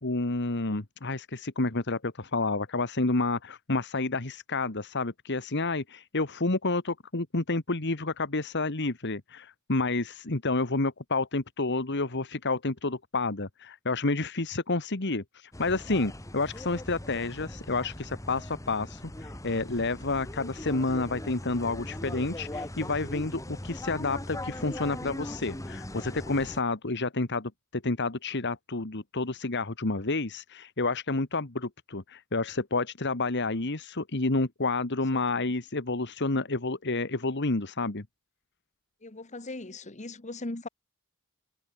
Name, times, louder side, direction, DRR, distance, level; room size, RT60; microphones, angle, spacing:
voice 1, 0.0-38.1, left 3 dB, 50° left, 1.7 m, -30 dB
sound 1, 15.5-26.6, left 1 dB, 15° left, 1.9 m, -40 dB
voice 2, 39.0-40.7, left 2 dB, 30° left, 1.4 m, -39 dB
head